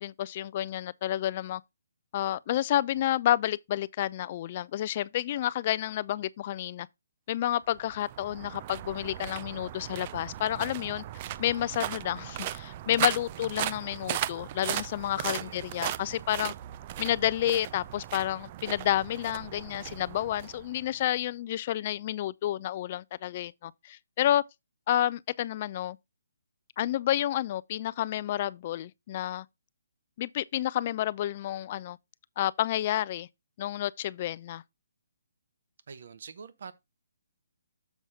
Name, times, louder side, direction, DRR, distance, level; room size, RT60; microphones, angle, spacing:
voice 1, 0.0-1.6 2.1-6.9 7.3-11.0 11.4-16.5 17.0-24.4 24.9-26.0 26.8-29.5 30.2-32.0 32.4-33.3 33.6-34.6, left 12 dB, 40° left, 0.4 m, -30 dB
sound 1, 7.7-21.1, right 13 dB, 35° right, 0.4 m, -37 dB
voice 2, 15.2-15.8 35.9-36.7, right 6 dB, 60° right, 1.0 m, -45 dB
7.1 x 4.1 x 4.8 m
hypercardioid pair, 150°, 0 cm